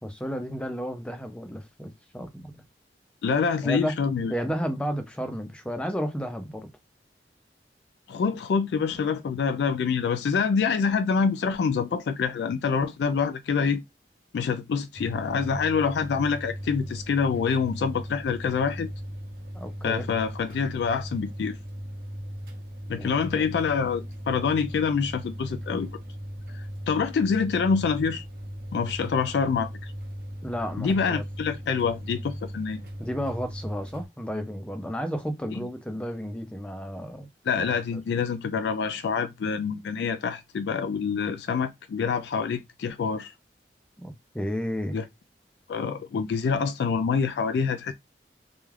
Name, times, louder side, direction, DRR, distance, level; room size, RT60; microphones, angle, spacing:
voice 1, 0.0-2.6 3.6-4.0 4.3-6.7 19.5-20.1 23.0-23.5 30.4-31.2 33.0-37.3 37.6-37.7 37.9-38.0 44.0-45.0, equal, 5° left, 0.4 m, -32 dB
voice 2, 3.2-4.3 8.1-13.8 14.3-18.9 19.8-21.6 22.9-25.9 26.5-28.2 28.7-29.7 30.8-32.8 35.5-35.7 37.5-43.3 44.9-45.0 45.7-47.9, left 5 dB, 75° left, 0.3 m, -26 dB
sound 1, 14.9-34.1, equal, 55° right, 0.8 m, -38 dB
2.3 x 2.2 x 3.2 m
head